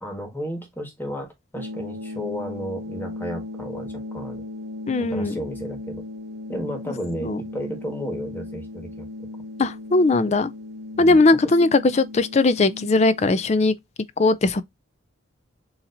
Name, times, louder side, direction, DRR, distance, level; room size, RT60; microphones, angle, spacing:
voice 1, 0.0-4.4 5.0-6.0 6.5-9.1 11.0-11.5, equal, 10° left, 1.4 m, -33 dB
sound 1, 1.5-13.5, left 2 dB, 55° right, 0.9 m, -37 dB
voice 2, 4.9-5.3 7.2-7.4 9.6-10.5 11.0-13.7 14.2-14.6, left 3 dB, 35° left, 0.4 m, -19 dB
6.8 x 2.9 x 2.5 m
head